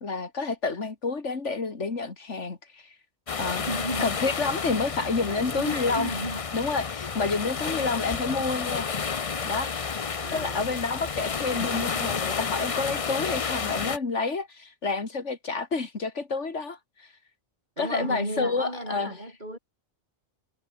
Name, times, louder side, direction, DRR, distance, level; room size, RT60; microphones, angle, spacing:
voice 1, 0.0-2.9 3.3-3.7 4.0-6.1 6.5-8.9 9.4-10.0 10.3-17.1 17.8-19.2, left 4 dB, 90° left, 2.8 m, -29 dB
sound 1, 3.3-14.0, left 5 dB, 35° left, 0.7 m, -31 dB
voice 2, 3.7-4.1 5.3-6.5 10.2-10.7 17.8-19.6, right 1 dB, 40° right, 7.8 m, -34 dB
omnidirectional pair, 1.2 m